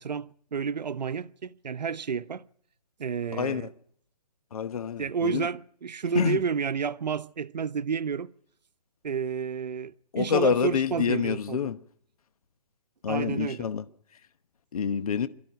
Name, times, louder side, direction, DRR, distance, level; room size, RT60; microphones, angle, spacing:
voice 1, 0.0-2.5 3.0-3.7 5.0-8.3 9.0-11.6 13.1-13.7, right 6 dB, 85° right, 0.9 m, -30 dB
voice 2, 3.3-3.7 4.5-5.5 6.1-6.4 10.1-11.8 13.0-13.9 14.1-14.2 14.7-15.3, left 7 dB, 60° left, 1.0 m, -27 dB
23.5 x 13.5 x 9.4 m
hypercardioid pair, 165°, 21 cm